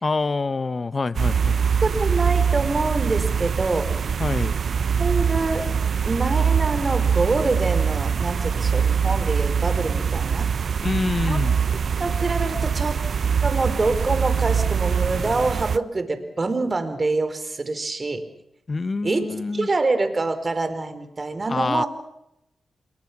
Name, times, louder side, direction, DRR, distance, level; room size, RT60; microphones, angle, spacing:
voice 1, 0.0-1.6 4.2-4.5 10.8-11.6 18.7-19.7 21.5-21.8, left 3 dB, 40° left, 15 dB, 1.1 m, -26 dB
sound 1, 1.1-15.8, right 7 dB, 65° right, 0.9 m, -23 dB
voice 2, 1.8-3.9 5.0-5.7 6.0-10.8 11.3-11.4 12.0-12.9 13.4-18.2 19.0-21.9, right 3 dB, 35° right, 9 dB, 4.5 m, -25 dB
29.0 x 22.0 x 6.1 m, 0.80 s
cardioid pair, 70°, 0 cm